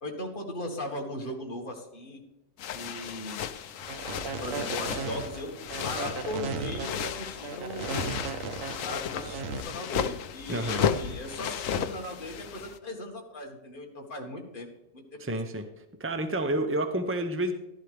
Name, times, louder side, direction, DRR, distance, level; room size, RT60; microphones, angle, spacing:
voice 1, 0.0-2.2 2.7-3.4 4.4-8.0 8.8-14.7 14.9-15.4, left 1 dB, 40° left, 1 dB, 1.9 m, -38 dB
sound 1, 2.6-12.8, left 8 dB, 70° left, 1.0 m, -34 dB
sound 2, 3.8-9.6, right 4 dB, 70° right, 1.4 m, -35 dB
voice 2, 10.5-10.9 15.2-15.7 16.0-17.5, right 1 dB, 20° right, 7 dB, 0.3 m, -29 dB
12.0 x 11.0 x 3.4 m, 1.0 s
omnidirectional pair, 1.4 m